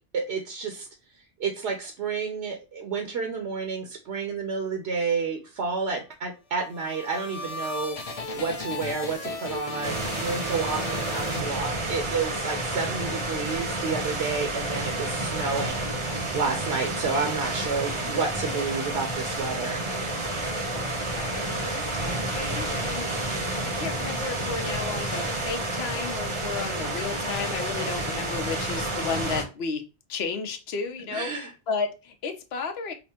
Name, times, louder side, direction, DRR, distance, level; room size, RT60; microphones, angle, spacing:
voice 1, 0.1-0.9 1.4-8.0 8.3-19.8 31.1-31.5, right 5 dB, 80° right, 3 dB, 1.0 m, -30 dB
sound 1, 6.5-12.1, left 2 dB, 40° left, 0.6 m, -36 dB
sound 2, 9.8-29.4, right 2 dB, 30° right, 0.7 m, -30 dB
voice 2, 20.5-29.8 30.1-32.9, left 5 dB, 75° left, 5 dB, 0.9 m, -33 dB
5.3 x 2.1 x 2.8 m, 0.30 s
omnidirectional pair, 1.1 m